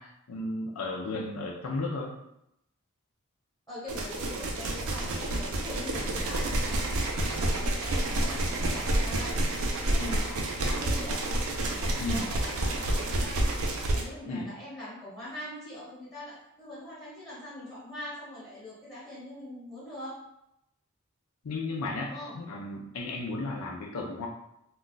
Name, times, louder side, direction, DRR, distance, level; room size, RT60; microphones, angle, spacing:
voice 1, 0.0-2.2 10.0-10.2 12.0-12.3 14.3-14.5 21.4-24.3, left 2 dB, 85° left, 0 dB, 0.5 m, -34 dB
voice 2, 3.7-7.1 7.8-9.4 9.8-11.2 11.6-13.5 13.9-20.2 22.0-22.4, left 1 dB, 15° left, -8 dB, 0.9 m, -43 dB
sound 1, 3.9-14.0, right 1 dB, 75° right, 0.5 m, -29 dB
2.3 x 2.3 x 3.9 m, 0.83 s
head